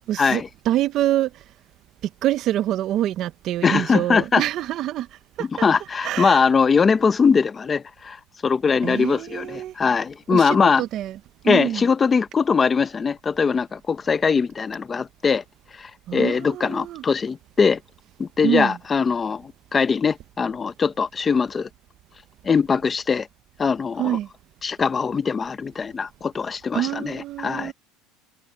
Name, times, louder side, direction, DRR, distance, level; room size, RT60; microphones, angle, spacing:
voice 1, 0.1-1.4 2.2-5.1 5.4-5.5 6.0-6.4 8.8-9.7 10.3-11.2 11.4-11.9 16.1-17.0 18.4-18.8 24.0-24.3 26.7-27.7, right 13 dB, 40° right, 0.5 m, -25 dB
voice 2, 3.6-4.4 5.6-10.8 11.4-15.4 15.7-17.8 18.2-21.7 22.4-23.3 23.6-24.2 24.6-27.7, left 5 dB, 15° left, 0.7 m, -21 dB
cardioid pair, 170°, 0 cm